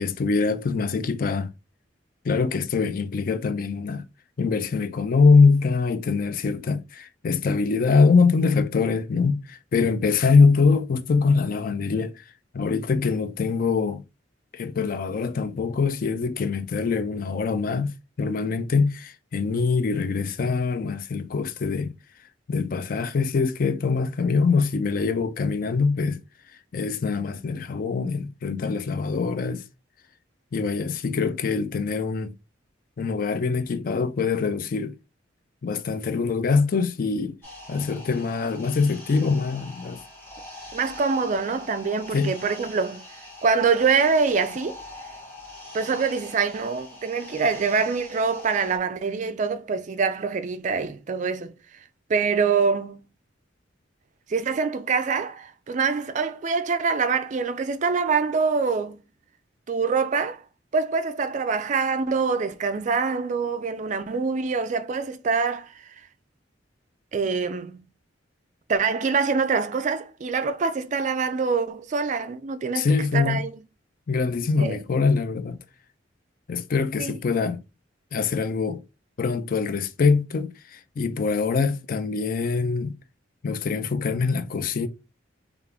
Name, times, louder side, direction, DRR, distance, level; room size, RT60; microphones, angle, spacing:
voice 1, 0.0-1.5 2.2-4.0 4.4-12.2 12.5-14.0 14.5-21.9 22.5-26.2 26.7-29.6 30.5-32.3 33.0-34.9 35.6-37.4 37.7-40.0 42.1-42.3 72.7-73.4 74.1-75.6 76.5-77.6 78.1-78.8 79.2-83.0 83.4-84.9, left 4 dB, 45° left, 0.4 m, -23 dB
sound 1, 37.4-48.8, left 2 dB, 10° left, 1.6 m, -43 dB
voice 2, 40.7-43.0 43.4-44.8 45.7-51.5 52.1-53.0 54.3-59.0 59.7-60.4 60.7-65.9 67.1-67.8 68.7-72.9 73.1-73.6 74.6-74.8 77.0-77.1, right 5 dB, 40° right, 0.3 m, -25 dB
3.5 x 2.4 x 3.4 m
head